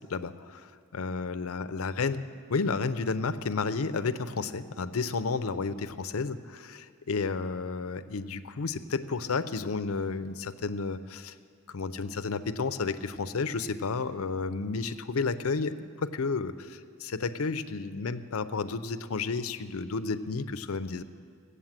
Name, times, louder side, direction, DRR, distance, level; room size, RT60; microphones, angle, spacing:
voice 1, 0.1-11.3 11.7-21.0, left 4 dB, 90° left, 12 dB, 0.6 m, -32 dB
16.0 x 8.3 x 7.4 m, 2.2 s
head